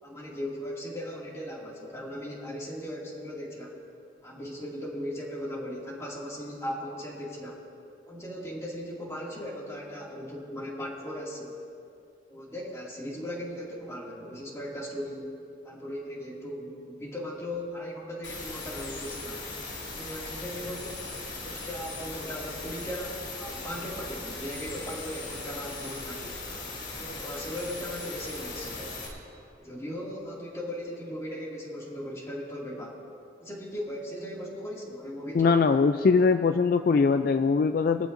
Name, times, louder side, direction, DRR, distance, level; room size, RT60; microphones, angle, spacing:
voice 1, 0.0-3.8 4.2-7.6 8.0-11.6 12.3-15.3 15.6-19.5 19.9-21.0 21.4-26.4 27.0-29.0 29.6-33.0 33.4-35.7, equal, 15° left, -4 dB, 2.3 m, -38 dB
sound 1, 18.2-29.1, left 3 dB, 80° left, 2.7 m, -39 dB
voice 2, 35.3-38.1, left 4 dB, 50° left, 9 dB, 0.3 m, -22 dB
22.5 x 14.0 x 2.6 m, 2.6 s
head